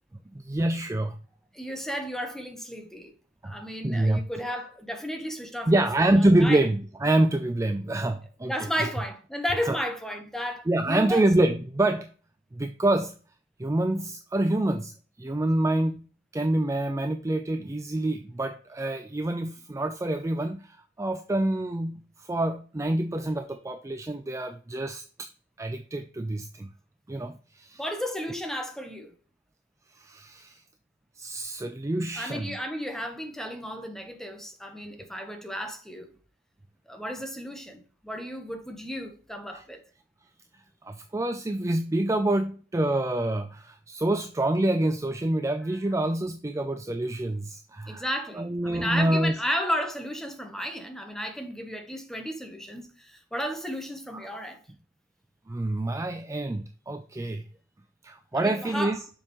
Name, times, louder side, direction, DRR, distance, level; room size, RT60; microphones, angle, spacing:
voice 1, 0.3-1.1 3.4-3.5 3.8-4.2 5.7-8.5 8.8-8.9 9.7-9.8 10.7-12.1 12.5-13.1 13.6-14.9 15.2-16.0 16.3-25.0 25.6-26.7 27.1-27.8 30.0-30.6 31.2-32.6 39.5-39.6 40.8-48.0 48.4-49.3 55.5-57.4 58.0-59.0, right 1 dB, 15° right, 0.4 m, -26 dB
voice 2, 1.5-3.1 3.4-6.6 8.4-11.3 27.8-29.1 32.1-36.1 36.9-39.8 47.9-54.6 58.3-59.0, equal, ahead, 1.0 m, -33 dB
7.0 x 5.4 x 3.1 m
head